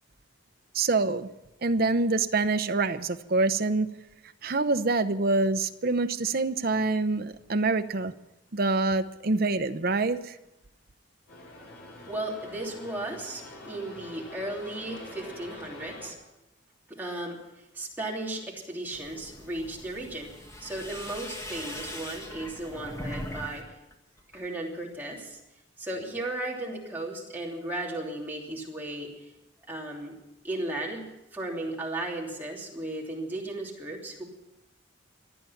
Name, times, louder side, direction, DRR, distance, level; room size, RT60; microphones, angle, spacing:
voice 1, 0.7-1.3 1.6-3.9 4.4-8.1 8.5-10.4, right 3 dB, 50° right, 9 dB, 0.7 m, -26 dB
sound 1, 11.3-16.1, left 1 dB, 65° left, 5.2 m, -45 dB
voice 2, 12.1-16.2 16.9-17.4 17.7-20.3 20.6-23.6 24.3-25.4 25.8-29.3 29.7-30.1 30.4-34.2, right 1 dB, 10° right, -3 dB, 3.1 m, -35 dB
sound 2, 18.9-23.6 23.9-24.5, equal, 15° left, 1.9 m, -40 dB
26.0 x 9.2 x 5.9 m, 0.90 s
head